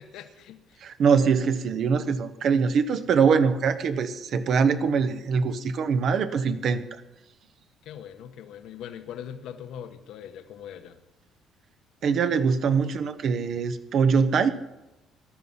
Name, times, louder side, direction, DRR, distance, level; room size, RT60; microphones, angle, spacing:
voice 1, 0.0-0.8 7.8-11.0, left 9 dB, 65° left, 7 dB, 1.3 m, -41 dB
voice 2, 0.8-6.8 12.0-14.5, right 6 dB, 45° right, 10 dB, 1.0 m, -23 dB
19.5 x 12.5 x 5.7 m, 0.96 s
cardioid pair, 170°, 0 cm